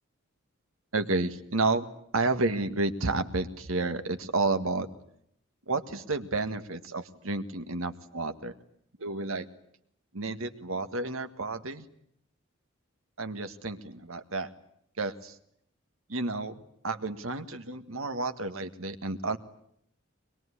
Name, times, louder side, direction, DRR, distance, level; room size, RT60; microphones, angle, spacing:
voice 1, 0.9-1.9 2.1-4.9 5.7-8.5 9.0-9.5 10.1-11.9 13.2-14.5 15.0-15.4 16.1-16.5 16.8-19.4, right 3 dB, 85° right, 9 dB, 1.8 m, -31 dB
23.0 x 22.0 x 9.9 m, 0.72 s
head